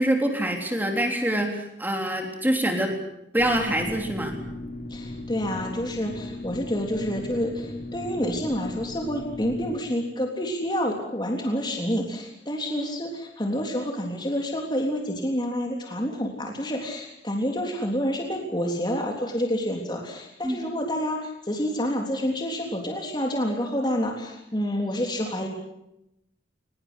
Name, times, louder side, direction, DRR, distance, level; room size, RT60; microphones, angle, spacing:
voice 1, 0.0-2.9 3.3-4.4 20.4-20.6, right 1 dB, 10° right, 3 dB, 3.6 m, -25 dB
sound 1, 3.4-9.8, left 1 dB, 50° left, 3.2 m, -37 dB
voice 2, 4.9-25.5, equal, 25° left, 1 dB, 3.5 m, -28 dB
22.5 x 21.0 x 8.2 m, 0.83 s
head